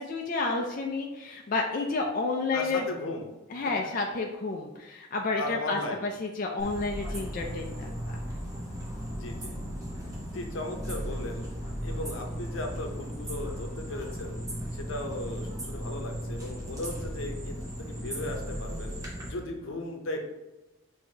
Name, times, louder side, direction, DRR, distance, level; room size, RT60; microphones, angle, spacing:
voice 1, 0.0-2.8 3.5-8.2, left 3 dB, 40° left, 1 dB, 0.4 m, -30 dB
voice 2, 2.5-3.3 5.4-6.0 9.1-9.6 10.3-11.5 11.8-14.4 14.7-19.0 19.2-20.3, left 1 dB, 75° left, 3 dB, 0.7 m, -36 dB
sound 1, 6.6-19.3, equal, 15° right, 1.0 m, -36 dB
6.4 x 2.8 x 2.8 m, 1.0 s
head